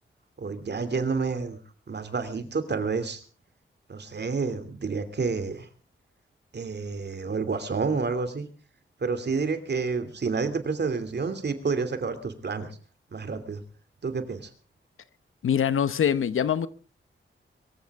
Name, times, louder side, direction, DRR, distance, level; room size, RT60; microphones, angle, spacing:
voice 1, 0.4-1.6 1.9-3.2 3.9-5.7 6.5-8.4 9.0-12.8 13.1-13.6 14.0-14.5, right 4 dB, 55° right, 2.7 m, -29 dB
voice 2, 15.4-16.7, left 8 dB, 80° left, 0.9 m, -23 dB
23.5 x 15.0 x 3.6 m
cardioid pair, 80°, 21 cm